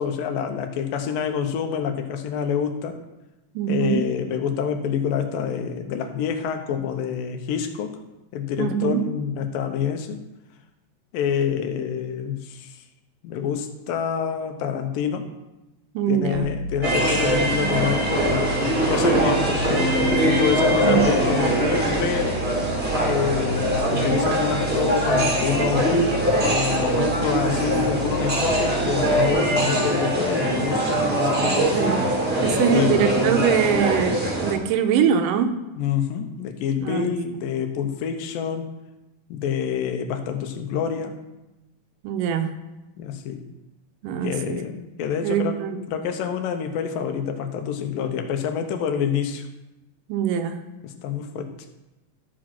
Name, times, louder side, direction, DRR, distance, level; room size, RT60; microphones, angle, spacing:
voice 1, 0.0-3.0 3.7-7.9 8.3-10.2 11.1-12.8 13.2-15.3 16.1-18.6 18.9-22.4 23.0-26.0 26.4-30.8 31.1-31.9 32.5-33.0 35.8-38.7 39.3-41.2 43.0-43.4 44.2-45.6 45.9-49.5 50.8-51.5, left 7 dB, 85° left, 6 dB, 2.6 m, -27 dB
voice 2, 3.6-4.1 8.6-9.0 15.9-16.5 20.8-21.0 31.7-32.0 32.4-35.6 36.8-37.1 42.0-42.6 44.0-44.6 45.2-45.8 50.1-50.6, right 8 dB, 80° right, 7 dB, 2.3 m, -23 dB
sound 1, 16.3-29.3, equal, 70° left, 2.5 m, -33 dB
sound 2, 16.8-34.5, right 1 dB, 35° right, 0.9 m, -22 dB
13.0 x 5.0 x 5.8 m, 1.0 s
omnidirectional pair, 3.9 m